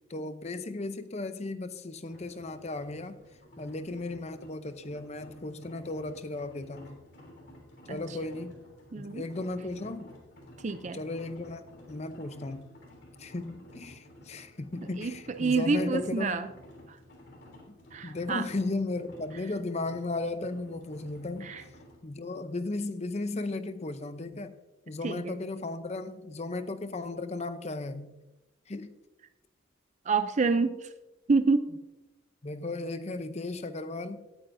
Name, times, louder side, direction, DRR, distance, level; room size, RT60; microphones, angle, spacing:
voice 1, 0.1-3.2 3.6-7.0 7.9-8.6 9.0-10.1 10.9-12.7 13.2-16.5 17.7-17.8 18.0-21.5 22.0-24.5 24.9-28.1 28.7-29.0 32.4-34.2, left 2 dB, 35° left, 0.6 m, -35 dB
sound 1, 2.1-22.0, left 1 dB, 55° left, 3.3 m, -52 dB
voice 2, 8.9-9.2 10.6-11.0 15.0-15.1 15.4-16.5 17.9-18.5 21.4-21.6 25.0-25.3 30.1-30.7 31.3-31.6, right 4 dB, 35° right, 0.4 m, -27 dB
17.5 x 9.0 x 2.6 m
head